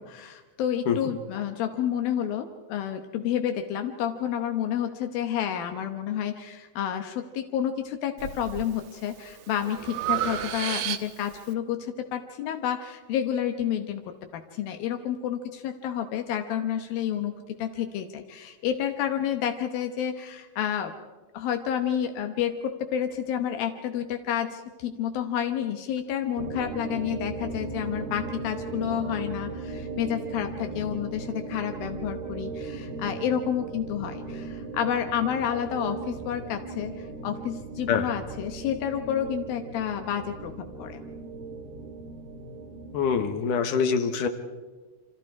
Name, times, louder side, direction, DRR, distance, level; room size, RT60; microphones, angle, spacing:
voice 1, 0.1-14.1 14.3-17.3 17.6-20.9 21.3-41.0, left 9 dB, 85° left, 5 dB, 2.9 m, -30 dB
Breathing, 8.2-8.7 9.2-11.4, right 11 dB, 65° right, 2.0 m, -31 dB
sound 1, 26.4-43.4, right 3 dB, 80° right, 4.0 m, -37 dB
voice 2, 42.9-44.3, left 6 dB, 70° left, 7 dB, 2.9 m, -24 dB
29.5 x 25.5 x 4.8 m, 1.3 s
omnidirectional pair, 4.1 m